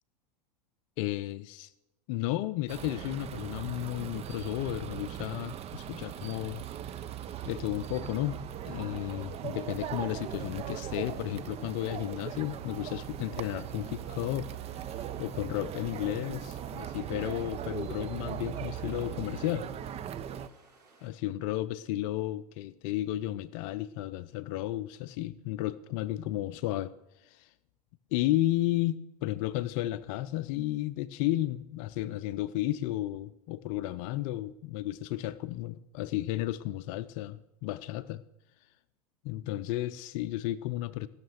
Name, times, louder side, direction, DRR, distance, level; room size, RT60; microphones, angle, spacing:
voice 1, 1.0-1.7 2.1-6.6 7.4-8.4 8.6-14.5 14.7-19.7 21.0-26.9 27.2-27.5 28.1-38.2 39.2-41.1, left 15 dB, 55° left, 0.5 m, -33 dB
sound 1, 2.7-20.5, right 10 dB, 30° right, 0.6 m, -39 dB
sound 2, 5.0-21.1, right 3 dB, 65° right, 4.7 m, -61 dB
sound 3, 10.6-19.0, left 1 dB, 10° right, 4.1 m, -62 dB
15.5 x 6.6 x 6.5 m
hypercardioid pair, 100°, 21 cm